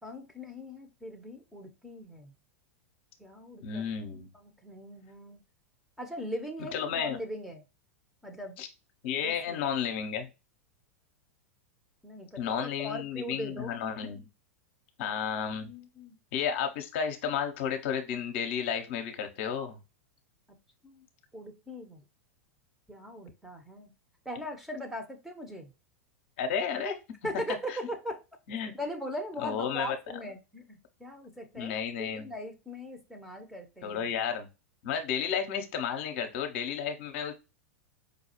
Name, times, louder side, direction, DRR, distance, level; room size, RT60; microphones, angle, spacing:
voice 1, 0.0-2.3 3.2-3.9 4.3-5.4 6.0-7.6 8.2-8.6 9.2-9.6 12.0-13.8 15.6-16.1 20.8-21.1 21.3-22.0 22.9-23.9 24.2-25.7 27.2-28.2 28.8-34.1, equal, 5° right, 3 dB, 0.9 m, -40 dB
voice 2, 3.6-4.3 6.7-7.2 8.6-8.7 9.0-10.3 12.4-14.3 15.0-15.7 16.3-19.8 26.4-27.0 27.7-27.8 28.5-28.7 29.4-30.0 31.5-32.3 33.8-34.5 34.8-37.3, left 7 dB, 55° left, 5 dB, 0.8 m, -32 dB
5.1 x 2.3 x 2.9 m, 0.27 s
figure-of-eight pair, 90°, 8 cm